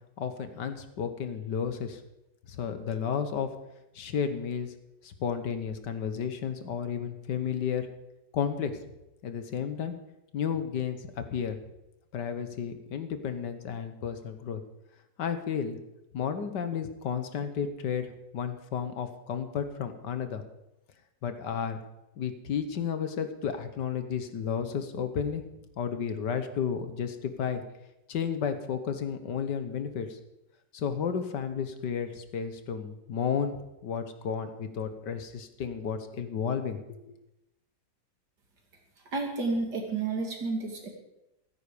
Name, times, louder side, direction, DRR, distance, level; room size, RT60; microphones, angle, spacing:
voice 1, 0.2-2.0 2.5-3.5 4.0-4.7 5.0-7.9 8.3-8.7 9.2-10.0 10.3-11.6 12.1-14.6 15.2-15.8 16.1-20.4 21.2-21.8 22.2-25.4 25.8-27.6 28.1-30.2 30.7-37.2, left 7 dB, 75° left, 9 dB, 1.8 m, -32 dB
voice 2, 39.1-40.9, right 3 dB, 70° right, 1 dB, 3.3 m, -31 dB
15.0 x 14.0 x 5.1 m, 0.90 s
omnidirectional pair, 1.9 m